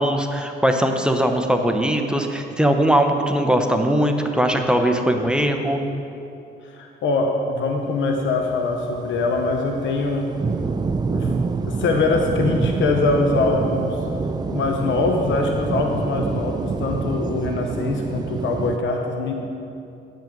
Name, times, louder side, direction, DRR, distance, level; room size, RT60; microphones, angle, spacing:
voice 1, 0.0-5.8, equal, 5° right, 4 dB, 0.8 m, -20 dB
voice 2, 6.6-10.3 11.1-14.0 14.5-19.5, left 3 dB, 75° left, 3 dB, 0.9 m, -23 dB
sound 1, 8.1-18.8, right 4 dB, 20° right, 0.4 m, -27 dB
9.0 x 7.5 x 5.2 m, 2.7 s
cardioid pair, 90°, 20 cm